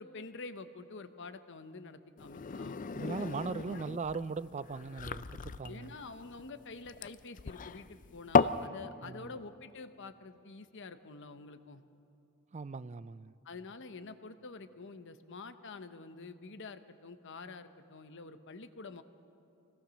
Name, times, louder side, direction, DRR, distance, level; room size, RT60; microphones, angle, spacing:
voice 1, 0.0-2.8 3.7-3.8 5.7-11.8 13.4-19.0, left 3 dB, 60° left, 0.9 m, -47 dB
sound 1, 2.2-8.7, left 5 dB, 40° left, 0.4 m, -34 dB
voice 2, 2.9-6.0 9.0-9.3 12.5-13.3, right 4 dB, 30° right, 0.4 m, -39 dB
24.5 x 18.0 x 6.3 m
head